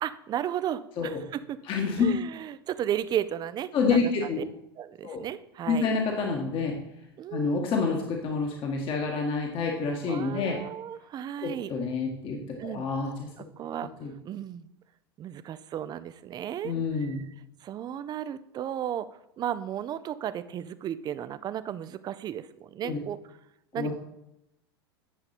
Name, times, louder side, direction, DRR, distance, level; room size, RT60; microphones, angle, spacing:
voice 1, 0.0-1.6 2.0-4.1 4.4-4.5 4.8-5.9 7.2-7.7 10.1-11.7 12.6-12.8 13.6-13.9 14.2-14.7 15.2-17.3 17.6-19.1 19.4-23.2 23.7-23.9, right 10 dB, 30° right, 14 dB, 0.5 m, -34 dB
voice 2, 1.7-2.1 3.7-4.4 5.0-5.2 5.7-6.8 7.3-10.6 11.4-13.3 14.0-14.1 16.6-17.2 22.8-23.0 23.7-23.9, left 4 dB, 40° left, 1 dB, 1.5 m, -28 dB
9.8 x 5.3 x 4.3 m, 0.84 s
hypercardioid pair, 100°, 13 cm